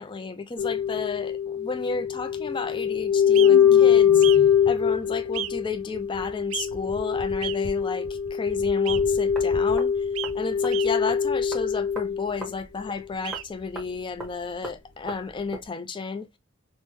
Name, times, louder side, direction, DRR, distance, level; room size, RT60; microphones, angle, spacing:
voice 1, 0.0-10.1 10.3-16.3, left 4 dB, 25° left, 0.4 m, -33 dB
sound 1, 0.6-12.5 12.9-13.0, left 8 dB, 90° left, 0.7 m, -23 dB
sound 2, 3.3-3.5 4.2-4.4 5.3-5.5 6.5-6.7 7.4-7.6 8.9-9.0 10.2-10.3 10.7-10.9 13.2-13.4, right 12 dB, 90° right, 0.3 m, -32 dB
sound 3, 9.0-15.7, right 1 dB, ahead, 1.0 m, -43 dB
3.5 x 2.1 x 2.9 m
head